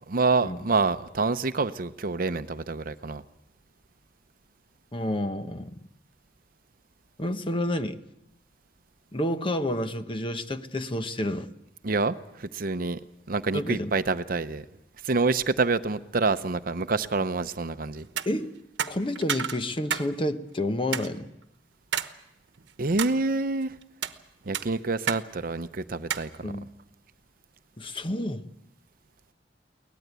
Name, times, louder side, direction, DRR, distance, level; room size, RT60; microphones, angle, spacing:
voice 1, 0.1-3.2 11.8-13.0 13.3-14.6 15.0-18.1 22.8-23.7 24.5-26.5, right 3 dB, 50° right, 11 dB, 0.7 m, -27 dB
voice 2, 4.9-5.7 7.2-8.0 9.1-11.5 13.5-13.9 18.2-18.5 18.9-21.3 26.4-26.7 27.8-28.4, left 1 dB, 30° left, 9 dB, 1.0 m, -29 dB
sound 1, 18.0-18.3 18.8-20.1 20.4-20.5 20.9-21.1 21.9-22.1 22.6-23.2 23.8-24.2 24.5-25.2 25.5-25.6 26.1-26.3, right 8 dB, 70° right, 1.1 m, -30 dB
23.0 x 18.5 x 8.2 m, 0.87 s
head